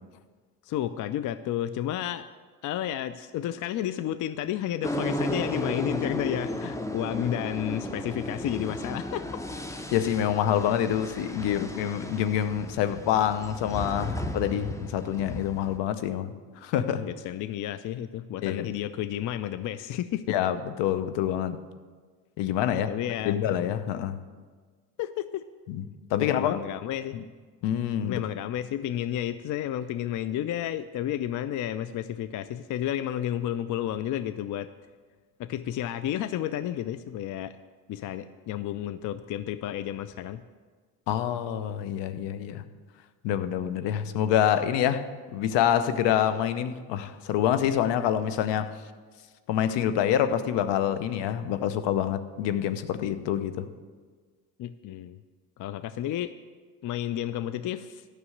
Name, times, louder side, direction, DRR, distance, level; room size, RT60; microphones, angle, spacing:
voice 1, 0.6-2.3 2.6-9.4 17.0-20.3 22.7-23.5 25.0-25.4 26.1-27.2 28.0-34.7 35.4-37.6 37.9-40.4 54.6-55.2 55.6-56.3 56.8-58.0, left 11 dB, 45° left, 0.5 m, -31 dB
sound 1, 4.8-15.8, left 1 dB, 5° left, 0.7 m, -34 dB
voice 2, 9.9-16.3 16.6-17.1 18.4-18.7 20.3-21.6 22.4-22.9 23.3-24.2 25.7-25.8 26.1-26.6 27.1-27.2 27.6-28.2 41.1-42.6 43.2-45.0 45.3-48.7 49.5-53.7, left 10 dB, 65° left, 0.8 m, -26 dB
9.8 x 6.2 x 7.8 m
hypercardioid pair, 70°, 46 cm